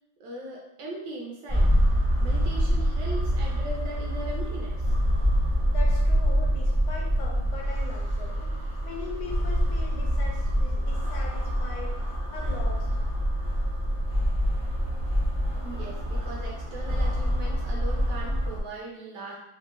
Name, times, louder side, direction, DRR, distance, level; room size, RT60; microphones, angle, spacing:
voice 1, 0.2-4.8 15.5-19.4, right 1 dB, 70° right, -2 dB, 1.1 m, -39 dB
sound 1, 1.5-18.6, equal, 35° right, 0.4 m, -26 dB
voice 2, 5.7-8.5 8.8-11.9 12.3-12.9, left 4 dB, 80° left, -2 dB, 1.4 m, -40 dB
3.9 x 2.1 x 2.3 m, 0.84 s
omnidirectional pair, 2.2 m